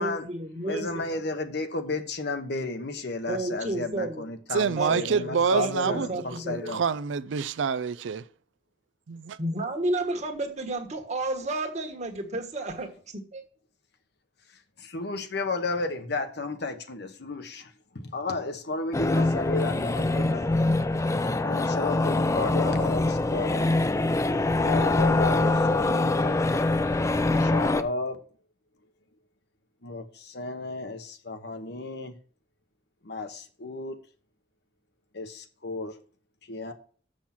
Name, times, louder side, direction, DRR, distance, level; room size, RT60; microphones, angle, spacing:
voice 1, 0.0-1.0 3.3-4.3 4.8-6.7 9.4-13.4, right 2 dB, 40° right, 1.4 m, -32 dB
voice 2, 0.6-6.8 14.8-20.8 21.4-23.7 24.6-26.4 27.4-28.2 29.8-32.2 33.0-34.0 35.1-36.0 36.5-36.7, left 3 dB, 65° left, 1.1 m, -33 dB
voice 3, 4.5-6.1 6.5-8.2 9.1-9.4, right 6 dB, 85° right, 0.4 m, -27 dB
sound 1, 18.9-27.8, left 2 dB, 15° left, 0.4 m, -24 dB
7.2 x 6.4 x 5.8 m
head